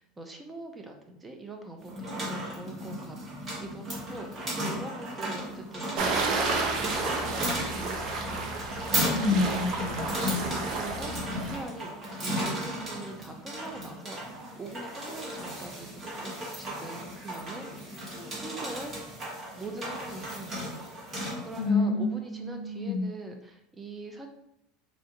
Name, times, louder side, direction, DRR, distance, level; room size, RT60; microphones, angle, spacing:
voice 1, 0.0-3.2 3.6-8.5 10.7-11.9 12.2-14.2 14.6-17.7 18.4-18.9 19.6-20.8 21.4-24.3, right 2 dB, 15° right, 4 dB, 0.6 m, -42 dB
sound 1, 1.8-21.7, equal, 35° right, 1.3 m, -35 dB
sound 2, 6.0-11.6, right 3 dB, 55° right, 0.6 m, -31 dB
voice 2, 9.1-10.1 21.6-23.1, left 3 dB, 75° left, 6 dB, 0.4 m, -28 dB
4.3 x 2.4 x 2.8 m, 0.81 s
supercardioid pair, 100°, 0 cm